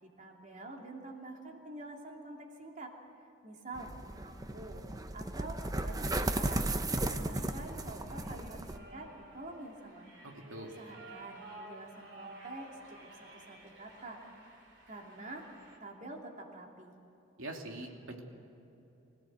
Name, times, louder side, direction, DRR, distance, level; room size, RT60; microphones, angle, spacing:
voice 1, 0.0-2.9 3.4-3.9 4.2-4.8 5.1-6.7 7.0-10.1 10.6-14.2 14.5-15.5 15.8-16.9, right 2 dB, 35° right, 1 dB, 2.8 m, -47 dB
sound 1, 3.7-8.8, right 2 dB, 20° right, 0.8 m, -35 dB
sound 2, 6.9-15.8, right 2 dB, 55° right, 3.6 m, -54 dB
voice 2, 10.2-10.7 17.4-18.2, right 1 dB, 75° right, 1 dB, 2.9 m, -43 dB
25.5 x 17.0 x 8.0 m, 3.0 s
head